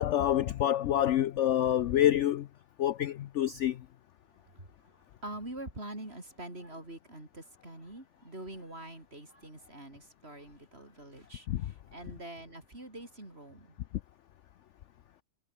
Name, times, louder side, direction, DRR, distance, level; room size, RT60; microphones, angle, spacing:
voice 1, 0.0-2.5 2.8-3.8 11.5-11.6, left 11 dB, 70° left, 0.7 m, -27 dB
voice 2, 4.4-13.8, right 1 dB, 35° right, 6.4 m, -45 dB
omnidirectional pair, 1.8 m